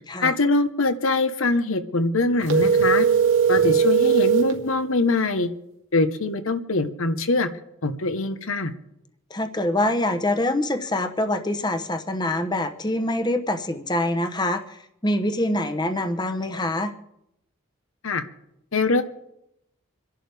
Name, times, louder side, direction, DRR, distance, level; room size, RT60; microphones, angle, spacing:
voice 1, 0.2-3.1 3.5-5.5 5.9-7.5 7.8-8.7 18.0-18.2 18.7-19.0, left 3 dB, 70° left, 9 dB, 1.1 m, -23 dB
sound 1, 2.4-4.5, right 6 dB, 60° right, 1.4 m, -19 dB
voice 2, 9.3-14.6 15.0-16.9, left 1 dB, 20° left, 7 dB, 0.9 m, -25 dB
26.5 x 11.0 x 3.5 m, 0.81 s
head